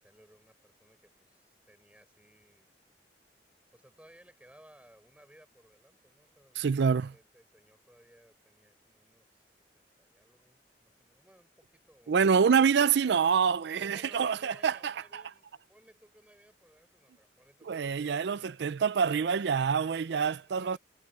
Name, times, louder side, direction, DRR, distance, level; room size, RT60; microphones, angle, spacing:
voice 1, 0.0-2.7 3.7-13.2 13.8-18.6 19.8-20.8, right 1 dB, 5° right, 5.2 m, -60 dB
voice 2, 6.6-7.1 12.1-15.2 17.7-20.8, right 6 dB, 65° right, 0.4 m, -26 dB
head